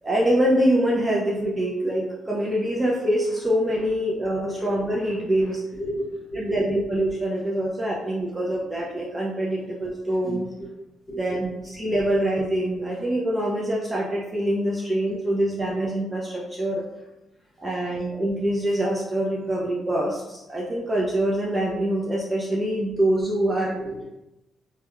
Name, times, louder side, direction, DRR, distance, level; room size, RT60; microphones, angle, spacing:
voice 1, 0.0-5.6 6.3-10.5 11.1-16.8 17.6-23.8, right 1 dB, 20° right, -4 dB, 0.4 m, -25 dB
voice 2, 4.1-4.6 5.8-6.6 9.6-9.7 10.2-10.7 11.1-11.2 23.7-24.2, right 1 dB, 20° left, -5 dB, 1.2 m, -34 dB
2.7 x 2.2 x 2.3 m, 0.96 s
cardioid pair, 90°, 0 cm